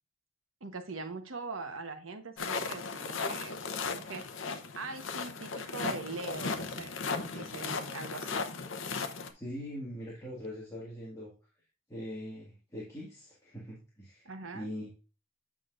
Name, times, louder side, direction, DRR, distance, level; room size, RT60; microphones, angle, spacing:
voice 1, 0.6-3.6 3.9-4.3 4.8-8.4 14.2-14.7, right 3 dB, 80° right, 7 dB, 1.2 m, -42 dB
sound 1, 2.4-9.3, left 4 dB, 70° left, 0.8 m, -36 dB
voice 2, 9.3-11.3 11.9-15.0, equal, 15° left, -5 dB, 1.9 m, -42 dB
8.5 x 6.0 x 2.5 m, 0.34 s
head